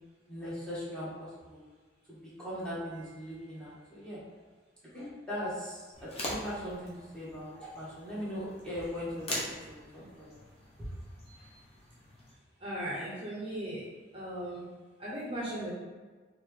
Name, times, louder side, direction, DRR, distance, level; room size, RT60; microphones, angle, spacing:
voice 1, 0.3-1.1 1.4-1.6 2.1-4.2 4.9-10.3, equal, 5° left, -10 dB, 1.5 m, -39 dB
sound 1, 5.9-12.3, left 1 dB, 35° left, 0.9 m, -43 dB
voice 2, 12.6-13.8 14.1-14.7 15.0-15.7, right 1 dB, 30° right, -6 dB, 0.8 m, -37 dB
4.4 x 3.2 x 3.2 m, 1.4 s
head